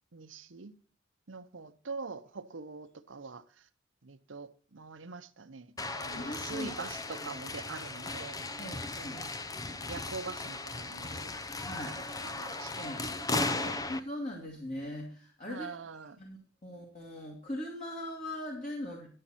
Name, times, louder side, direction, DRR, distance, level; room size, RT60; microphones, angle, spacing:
voice 1, 0.1-0.7 1.3-3.7 4.0-9.3 9.9-11.3 11.9-13.8 15.5-16.2, right 4 dB, 80° right, 0.8 m, -44 dB
sound 1, 5.8-14.0, left 2 dB, 20° left, 0.6 m, -37 dB
voice 2, 6.1-6.7 7.2-7.3 8.6-9.2 11.6-12.0 12.8-13.1 13.9-15.7 16.2-19.1, left 1 dB, 40° left, 2.1 m, -40 dB
11.0 x 7.7 x 4.2 m
head